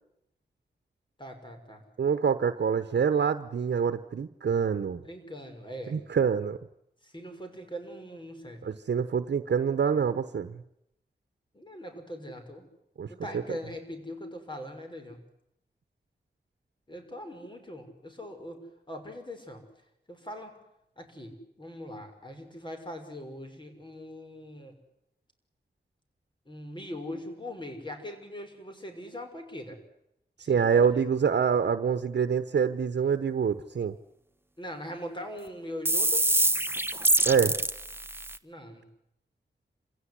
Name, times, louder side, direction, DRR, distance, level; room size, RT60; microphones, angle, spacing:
voice 1, 1.2-1.8 5.0-6.0 7.0-8.7 11.5-12.7 13.1-15.2 16.9-18.6 18.9-19.6 20.1-20.6 21.0-24.7 26.5-29.8 30.4-30.9 34.6-36.2 38.4-38.8, equal, 25° left, 5 dB, 6.0 m, -41 dB
voice 2, 2.0-5.0 5.9-6.6 8.6-10.6 13.0-13.1 13.3-13.4 30.5-33.9 37.3-37.5, right 6 dB, 85° right, 10 dB, 1.0 m, -26 dB
sound 1, 35.9-38.4, right 1 dB, 15° right, 1.1 m, -25 dB
27.0 x 16.5 x 9.9 m, 0.82 s
wide cardioid pair, 70°, 18 cm